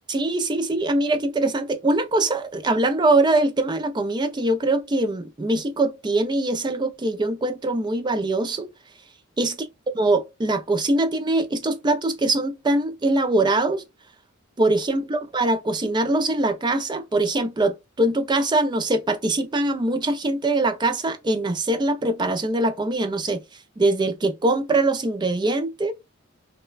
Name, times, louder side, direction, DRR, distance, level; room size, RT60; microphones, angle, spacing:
voice 1, 0.1-8.7 9.4-9.6 9.9-13.8 14.6-23.4 23.8-25.9, right 2 dB, 20° right, 0.4 m, -22 dB
3.1 x 2.1 x 2.3 m
head